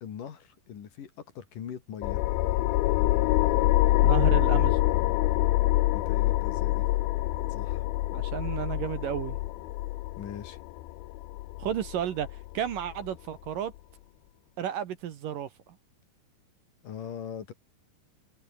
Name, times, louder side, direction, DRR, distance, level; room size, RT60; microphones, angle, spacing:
voice 1, 0.0-2.2 5.9-6.9 7.5-7.8 10.2-10.6 16.8-17.5, left 8 dB, 55° left, 3.6 m, -41 dB
sound 1, 2.0-13.1, left 18 dB, 80° left, 2.4 m, -26 dB
voice 2, 4.0-4.8 8.1-9.4 11.6-13.7 14.6-15.5, right 10 dB, 60° right, 2.8 m, -32 dB
omnidirectional pair, 4.7 m